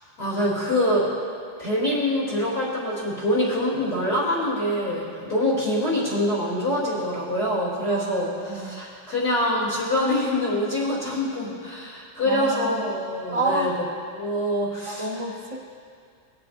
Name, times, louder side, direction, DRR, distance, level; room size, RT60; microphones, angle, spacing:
voice 1, 0.2-1.1 1.6-13.8 14.1-15.1, left 1 dB, 35° left, -6 dB, 3.2 m, -25 dB
voice 2, 8.5-8.8 12.3-12.9 13.3-13.8 14.9-15.6, right 2 dB, 25° right, -1 dB, 0.7 m, -28 dB
21.5 x 7.6 x 2.6 m, 2.3 s
omnidirectional pair, 2.0 m